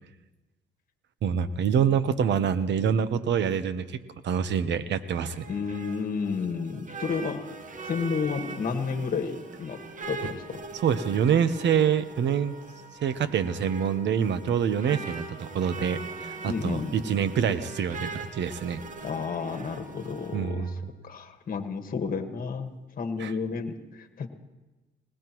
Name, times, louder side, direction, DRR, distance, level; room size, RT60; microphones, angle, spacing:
voice 1, 1.2-5.4 10.7-12.5 13.0-18.8 20.3-20.8 23.2-23.3, right 7 dB, 65° right, 13 dB, 0.9 m, -26 dB
sound 1, 5.0-20.4, right 4 dB, 40° right, 1.2 m, -41 dB
voice 2, 5.5-7.6 7.8-10.6 16.5-16.9 19.0-20.7 21.0-22.7 23.0-24.3, left 5 dB, 45° left, 5 dB, 1.6 m, -31 dB
Wind instrument woodwind instrument, 10.9-20.8, right 2 dB, 10° right, 5.9 m, -53 dB
20.5 x 19.0 x 3.1 m, 1.1 s
cardioid pair, 90°, 20 cm